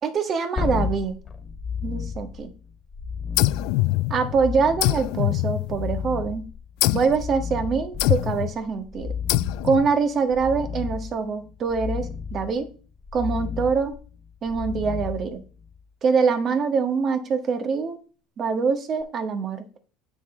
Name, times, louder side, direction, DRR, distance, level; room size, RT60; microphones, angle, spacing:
voice 1, 0.0-1.1 1.8-2.5 4.1-6.4 6.9-9.1 9.6-12.7 13.1-14.0 14.4-15.4 16.0-18.0 18.4-19.6, right 5 dB, 40° right, 8 dB, 1.5 m, -24 dB
sound 1, 0.6-15.9 19.0-19.1, left 6 dB, 25° left, 1.8 m, -33 dB
Short Laser Shots, 3.4-4.4 4.8-6.1 6.8-7.2 8.0-8.5 9.3-9.9, left 20 dB, 70° left, 0.3 m, -24 dB
8.1 x 6.2 x 4.4 m, 0.38 s
supercardioid pair, 100°, 0 cm